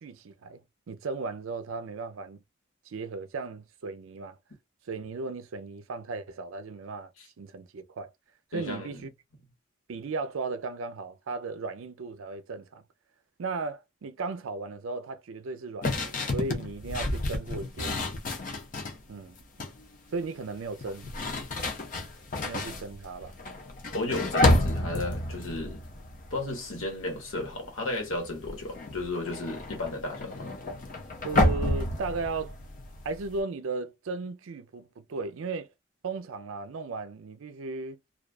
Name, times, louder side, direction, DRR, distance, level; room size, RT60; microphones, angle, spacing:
voice 1, 0.0-2.4 2.9-4.4 4.9-7.1 7.4-8.1 8.5-9.1 9.9-12.8 13.4-18.0 19.1-19.4 20.1-21.1 22.4-23.3 31.2-32.6 33.0-35.7 36.0-38.0, right 3 dB, 85° right, 0.5 m, -36 dB
voice 2, 8.5-9.0 23.9-25.8 26.3-30.5, left 2 dB, 85° left, 1.2 m, -34 dB
sound 1, 15.8-19.0 19.4-19.8 20.7-27.0 27.3-27.6 27.9-33.4, left 2 dB, 40° left, 0.5 m, -30 dB
2.4 x 2.3 x 2.3 m
head